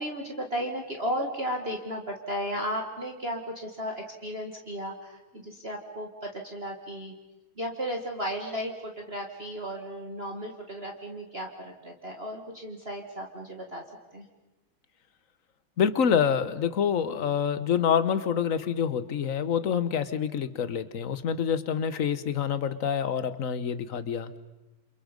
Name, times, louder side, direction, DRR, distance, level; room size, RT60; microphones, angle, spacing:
voice 1, 0.0-7.1 7.6-13.8 14.1-14.3, equal, 30° right, 2 dB, 2.1 m, -34 dB
voice 2, 15.8-24.3, left 7 dB, 50° left, 13 dB, 1.2 m, -27 dB
28.5 x 28.0 x 5.3 m, 1.0 s
omnidirectional pair, 2.2 m